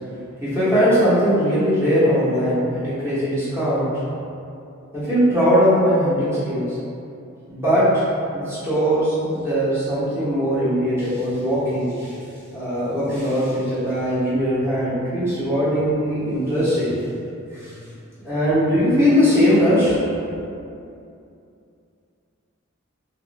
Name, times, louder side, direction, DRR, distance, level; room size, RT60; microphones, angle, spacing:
voice 1, 0.4-3.9 4.9-6.8 7.5-7.9 8.3-12.2 12.5-17.0 17.5-17.7 18.2-20.4, equal, 10° right, -13 dB, 1.1 m, -20 dB
3.0 x 2.8 x 2.5 m, 2.6 s
head